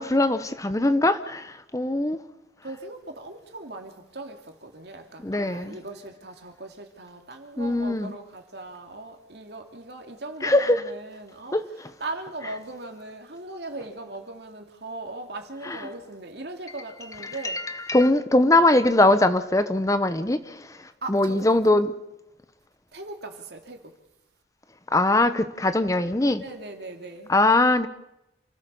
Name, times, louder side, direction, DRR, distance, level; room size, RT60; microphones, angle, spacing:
voice 1, 0.0-2.2 5.2-5.8 7.6-8.1 10.4-10.8 11.5-11.9 15.6-15.8 17.2-21.9 24.9-26.4 27.3-27.9, left 2 dB, 20° left, 0.8 m, -22 dB
voice 2, 2.6-11.6 12.0-17.6 21.0-21.6 22.9-23.9 26.4-27.3, right 2 dB, 65° right, 2.9 m, -39 dB
28.5 x 16.0 x 7.0 m
head